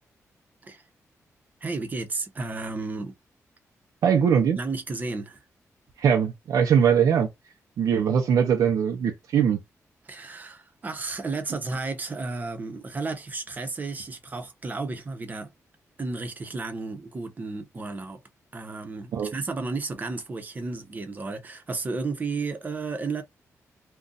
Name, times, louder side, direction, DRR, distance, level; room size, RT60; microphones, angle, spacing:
voice 1, 1.6-3.1 4.5-5.4 10.0-15.5 16.0-18.2 18.5-23.2, right 3 dB, 30° right, 0.8 m, -33 dB
voice 2, 4.0-4.6 6.0-7.3 7.8-9.6 19.1-19.3, right 7 dB, 85° right, 0.6 m, -21 dB
2.5 x 2.3 x 3.9 m
wide cardioid pair, 125°, 6 cm